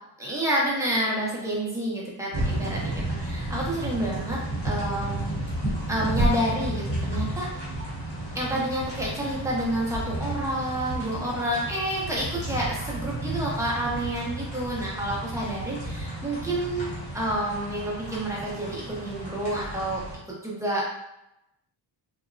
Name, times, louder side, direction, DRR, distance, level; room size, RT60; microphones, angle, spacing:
voice 1, 0.2-5.4 5.9-7.5 8.3-20.9, right 1 dB, 5° right, -5 dB, 0.5 m, -29 dB
sound 1, 2.3-20.2, right 1 dB, 15° left, 1.0 m, -32 dB
2.8 x 2.0 x 2.5 m, 0.88 s
wide cardioid pair, 150°, 46 cm